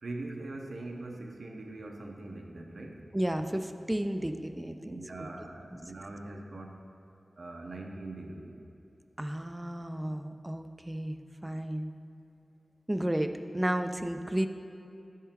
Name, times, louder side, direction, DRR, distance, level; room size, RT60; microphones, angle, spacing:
voice 1, 0.0-3.0 4.8-6.8 7.4-8.6, right 2 dB, 70° right, 2 dB, 0.7 m, -42 dB
voice 2, 3.1-5.3 5.7-5.8 9.2-11.9 12.9-14.5, right 1 dB, 15° right, 7 dB, 0.3 m, -33 dB
10.5 x 3.7 x 4.3 m, 2.8 s
wide cardioid pair, 95°, 0 cm